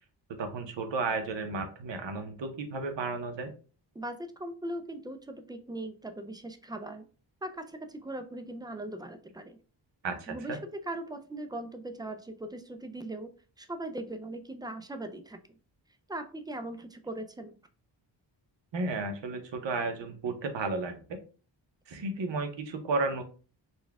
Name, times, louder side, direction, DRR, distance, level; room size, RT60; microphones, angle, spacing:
voice 1, 0.4-3.5 10.0-10.6 18.7-21.2 21.9-23.2, right 3 dB, 70° right, 6 dB, 0.9 m, -33 dB
voice 2, 4.0-7.0 7.4-9.6 10.3-10.6 10.9-13.3 13.6-15.4 16.1-17.5, right 1 dB, 10° right, 7 dB, 0.3 m, -39 dB
4.2 x 2.3 x 3.4 m, 0.37 s
wide cardioid pair, 105°, 46 cm